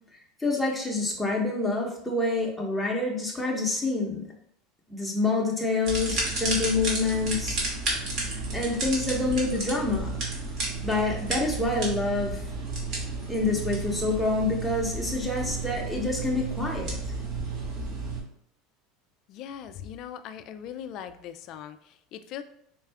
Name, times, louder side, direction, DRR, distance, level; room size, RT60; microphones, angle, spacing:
voice 1, 0.4-4.3 4.9-7.6 8.5-10.2 10.8-12.4 13.3-16.9, left 3 dB, ahead, -2 dB, 0.9 m, -27 dB
sound 1, 5.8-18.2, right 3 dB, 50° right, 1.4 m, -32 dB
voice 2, 19.3-22.4, left 9 dB, 50° left, 10 dB, 0.3 m, -40 dB
4.4 x 2.4 x 3.3 m, 0.72 s
supercardioid pair, 135°, 0 cm